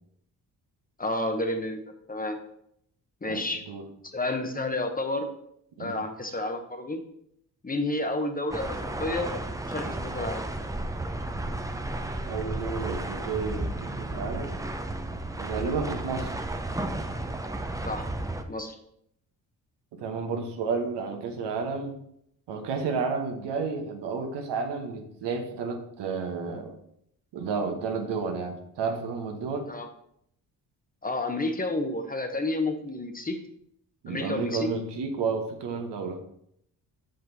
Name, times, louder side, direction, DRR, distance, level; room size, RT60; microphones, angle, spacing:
voice 1, 1.0-1.8 2.1-2.4 3.2-3.6 4.1-5.3 5.8-7.0 7.6-9.4 9.7-10.4 17.8-18.1 18.5-18.8 29.7-29.9 31.0-33.4 34.1-34.7, left 2 dB, 20° left, 6 dB, 0.9 m, -30 dB
voice 2, 3.2-3.8 5.8-6.1 12.3-14.6 15.4-16.3 19.9-22.0 22.5-26.8 27.3-29.7 34.0-36.2, right 5 dB, 80° right, 4 dB, 1.1 m, -31 dB
sound 1, 8.5-18.4, right 2 dB, 10° right, 0.6 m, -33 dB
6.0 x 5.1 x 4.0 m, 0.72 s
cardioid pair, 65°, 41 cm